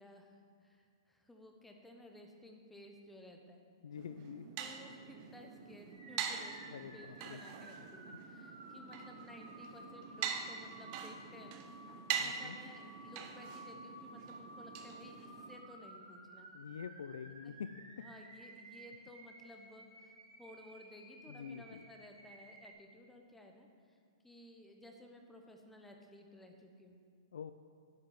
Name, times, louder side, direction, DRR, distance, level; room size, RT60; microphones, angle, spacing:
voice 1, 0.0-3.6 4.6-16.5 17.4-17.6 18.0-24.0 24.2-27.0, left 1 dB, 5° left, 2 dB, 1.0 m, -56 dB
voice 2, 3.8-4.6 6.7-7.4 12.2-12.6 16.5-18.1 21.3-21.9 27.3-27.5, left 7 dB, 75° left, 10 dB, 0.4 m, -46 dB
sound 1, 4.0-15.6, right 7 dB, 40° right, 0.9 m, -44 dB
sound 2, 5.9-22.7, right 1 dB, 70° right, 3.1 m, -55 dB
10.5 x 5.6 x 7.5 m, 2.2 s
hypercardioid pair, 130°, 3 cm